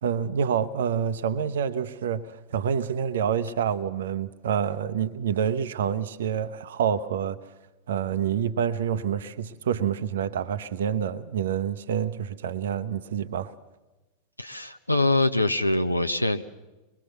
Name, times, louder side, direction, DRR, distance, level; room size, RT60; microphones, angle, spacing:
voice 1, 0.0-7.4 7.9-13.5, right 8 dB, 60° right, 13 dB, 0.9 m, -27 dB
voice 2, 14.4-16.4, left 2 dB, 85° left, 8 dB, 0.7 m, -24 dB
23.5 x 21.5 x 6.7 m, 1.1 s
figure-of-eight pair, 90°, 0 cm